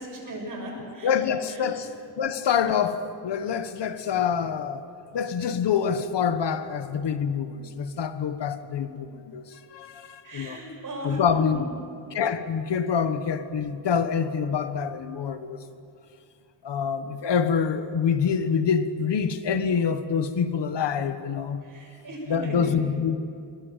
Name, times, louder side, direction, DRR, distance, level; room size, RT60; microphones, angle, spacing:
voice 1, 0.0-1.1 1.5-1.7 10.2-11.2 11.5-11.6 21.6-22.8, right 1 dB, 50° right, 6.7 m, -38 dB
voice 2, 1.0-1.9 2.2-4.8 5.1-10.6 11.0-11.6 12.1-15.6 16.6-21.6 22.3-23.2, left 7 dB, 75° left, 1.5 m, -26 dB
27.0 x 23.5 x 7.5 m
wide cardioid pair, 170°, 42 cm